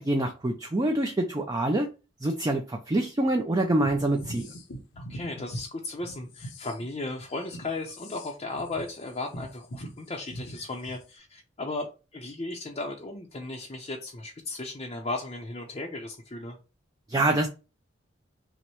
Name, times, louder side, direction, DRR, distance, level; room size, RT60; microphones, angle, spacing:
voice 1, 0.0-1.9 2.2-4.5 17.1-17.5, right 1 dB, 20° right, 0.4 m, -25 dB
sound 1, 3.8-5.6 6.0-11.1, equal, 90° left, 0.9 m, -41 dB
voice 2, 5.0-16.6, left 2 dB, 30° left, 0.6 m, -36 dB
6.1 x 2.1 x 3.0 m
head